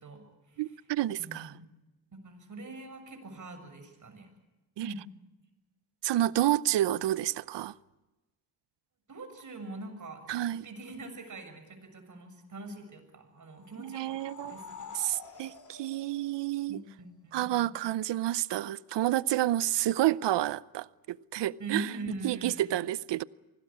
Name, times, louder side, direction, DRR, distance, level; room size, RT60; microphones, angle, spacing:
voice 1, 0.0-0.8 1.2-1.6 2.1-4.3 4.8-5.0 9.1-14.2 14.4-14.9 15.2-15.6 16.7-17.7 21.6-22.8, right 2 dB, 45° right, 6.9 m, -43 dB
voice 2, 0.6-1.5 4.8-4.9 6.0-7.7 10.3-10.6 13.8-14.6 14.9-16.8 17.3-21.9 22.2-23.2, right 14 dB, 75° right, 0.7 m, -29 dB
sound 1, 13.5-17.1, left 5 dB, 45° left, 2.9 m, -48 dB
25.0 x 19.0 x 8.6 m
cardioid pair, 80°, 43 cm